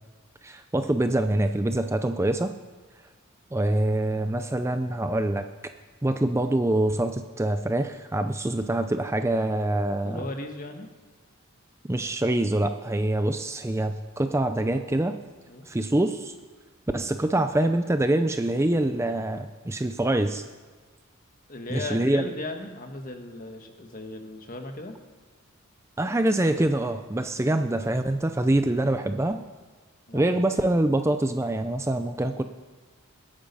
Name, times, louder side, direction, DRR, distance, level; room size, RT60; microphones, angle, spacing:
voice 1, 0.4-2.5 3.5-5.5 6.0-10.2 11.9-15.1 15.7-16.3 16.9-20.4 21.7-22.2 26.0-29.4 30.1-32.4, right 1 dB, 15° right, 8 dB, 0.5 m, -25 dB
voice 2, 10.0-10.9 15.5-15.7 21.5-25.0 30.1-30.3, left 2 dB, 40° left, 5 dB, 1.5 m, -37 dB
21.5 x 8.8 x 5.4 m, 1.4 s
head